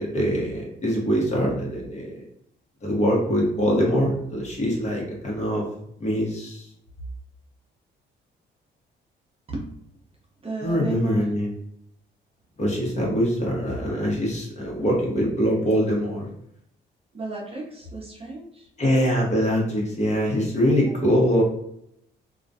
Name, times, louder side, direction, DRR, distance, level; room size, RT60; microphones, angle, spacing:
voice 1, 0.0-2.2 2.8-5.7 6.0-6.7 10.6-11.5 12.6-16.3 18.8-21.4, equal, 35° left, -2 dB, 0.9 m, -23 dB
voice 2, 10.4-11.2 17.1-18.7 20.8-21.1, right 3 dB, 30° right, -2 dB, 0.6 m, -33 dB
2.3 x 2.1 x 2.6 m, 0.74 s
cardioid pair, 90°, 20 cm